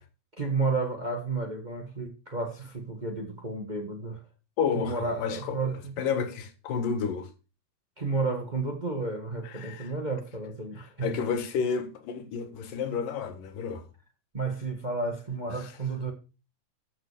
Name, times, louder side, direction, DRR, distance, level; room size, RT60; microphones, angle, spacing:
voice 1, 0.4-4.2 4.7-5.9 8.0-11.1 14.3-16.1, right 3 dB, 25° right, 0.9 m, -32 dB
voice 2, 4.6-7.3 9.4-9.9 10.8-13.9 15.5-15.7, left 6 dB, 80° left, 3.2 m, -31 dB
14.0 x 7.7 x 5.1 m
omnidirectional pair, 3.9 m